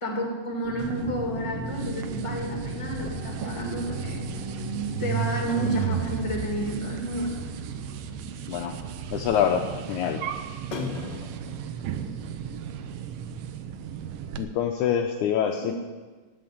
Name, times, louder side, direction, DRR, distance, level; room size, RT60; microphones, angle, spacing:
voice 1, 0.0-4.2 5.0-7.4 15.6-15.7, right 1 dB, 10° left, 0 dB, 1.7 m, -31 dB
sound 1, 0.6-9.1, left 4 dB, 30° left, 2.0 m, -39 dB
sound 2, 0.8-14.4, right 9 dB, 85° right, 2.4 m, -34 dB
sound 3, 5.3-7.3 7.7-7.8 8.1-8.2 8.4-8.7 9.1-9.2 10.7-12.6 12.8-12.9 13.4-13.5 13.8-13.9, left 4 dB, 45° left, 1.5 m, -39 dB
voice 2, 9.1-10.2 14.4-15.7, left 8 dB, 75° left, 3 dB, 1.9 m, -25 dB
15.5 x 5.4 x 9.5 m, 1.4 s
omnidirectional pair, 3.9 m